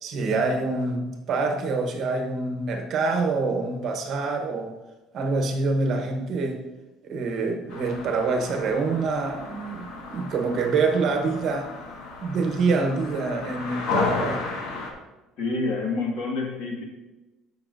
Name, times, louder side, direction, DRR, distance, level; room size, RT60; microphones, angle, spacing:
voice 1, 0.0-4.7 5.1-6.6 7.0-11.7 12.2-14.4, right 3 dB, 40° right, 4 dB, 0.9 m, -26 dB
sound 1, 7.7-14.9, left 4 dB, 80° left, 1.5 m, -33 dB
voice 2, 15.4-16.8, left 3 dB, 55° left, 0 dB, 1.8 m, -28 dB
13.5 x 5.5 x 2.6 m, 1.1 s
cardioid pair, 175°, 0 cm